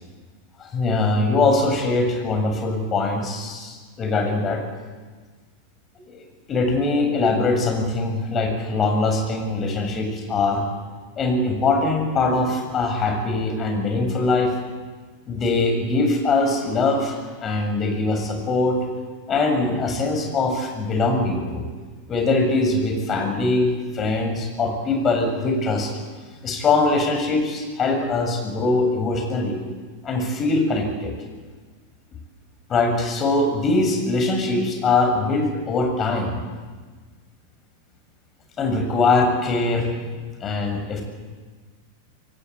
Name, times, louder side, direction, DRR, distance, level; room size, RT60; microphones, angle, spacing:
voice 1, 0.6-4.6 6.1-6.2 6.5-10.6 11.2-14.5 15.3-18.8 19.3-21.6 22.1-25.9 26.4-29.6 30.0-31.1 32.7-36.4 38.6-41.0, left 3 dB, 25° left, 3 dB, 7.4 m, -22 dB
26.0 x 23.0 x 8.6 m, 1.4 s
figure-of-eight pair, 90°, 0 cm